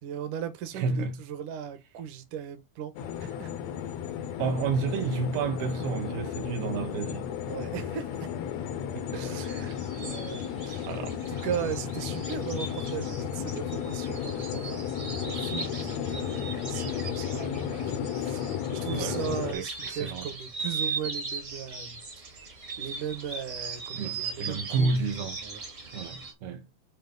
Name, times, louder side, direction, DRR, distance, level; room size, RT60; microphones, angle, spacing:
voice 1, 0.0-2.9 3.2-3.5 7.5-8.3 9.1-10.9 11.3-24.9 25.4-25.7, right 8 dB, 65° right, 2.5 m, -38 dB
voice 2, 0.7-1.2 4.2-7.3 8.9-9.4 10.9-11.2 18.9-19.2 19.5-20.3 23.9-25.4 25.9-26.7, right 4 dB, 85° right, 3.0 m, -31 dB
sound 1, 3.0-19.5, left 9 dB, 85° left, 1.5 m, -34 dB
sound 2, 9.4-26.3, right 4 dB, 45° right, 1.0 m, -39 dB
8.2 x 3.0 x 5.3 m
omnidirectional pair, 4.3 m